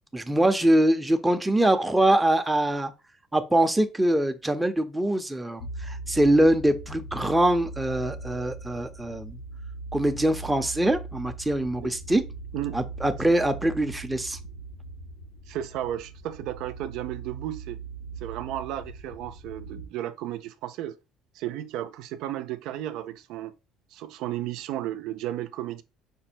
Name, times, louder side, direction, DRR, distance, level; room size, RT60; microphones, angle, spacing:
voice 1, 0.1-2.9 3.3-9.4 9.9-12.2 12.7-14.4, right 1 dB, 5° right, 0.6 m, -23 dB
sound 1, 5.6-19.9, right 3 dB, 75° left, 1.0 m, -40 dB
voice 2, 15.5-17.8 18.2-21.0 21.3-23.5 23.9-25.8, right 12 dB, 75° right, 0.4 m, -33 dB
5.2 x 2.1 x 4.2 m
cardioid pair, 115°, 0 cm